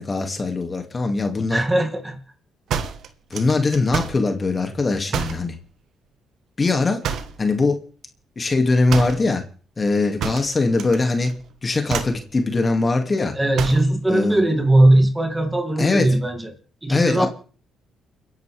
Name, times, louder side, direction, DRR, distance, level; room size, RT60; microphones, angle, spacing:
voice 1, 0.0-1.6 3.3-5.6 6.6-7.0 7.4-7.8 8.4-9.4 9.8-11.3 11.6-13.3 14.1-14.4 15.8-16.1 16.9-17.3, left 3 dB, 30° left, 5 dB, 2.4 m, -21 dB
voice 2, 1.5-2.2 13.3-16.5 16.8-17.3, right 1 dB, 10° right, 5 dB, 2.7 m, -19 dB
sound 1, 2.7-4.3 5.1-5.5 7.0-7.5 8.9-9.3 10.2-11.0 11.2-11.5 11.9-12.2 13.5-13.9, right 7 dB, 75° right, 1.4 m, -28 dB
29.5 x 11.0 x 3.5 m, 0.41 s
cardioid pair, 90°, 0 cm